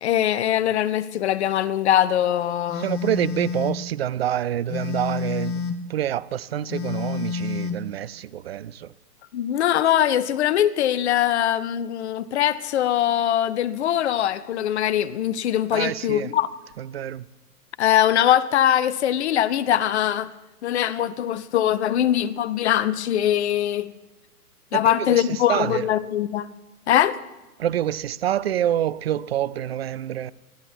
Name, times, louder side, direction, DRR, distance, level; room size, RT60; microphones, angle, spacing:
voice 1, 0.0-2.9 9.3-16.5 17.8-20.3 20.6-23.9 24.7-26.5 26.9-27.2, left 11 dB, 45° left, 0.9 m, -22 dB
Telephone, 2.7-3.8 4.7-5.8 6.7-7.8, left 6 dB, 20° left, 1.1 m, -29 dB
voice 2, 2.7-8.9 15.7-16.3 16.8-17.3 24.7-25.9 27.6-30.3, right 11 dB, 45° right, 0.4 m, -27 dB
21.5 x 13.0 x 4.4 m
figure-of-eight pair, 125°, 46 cm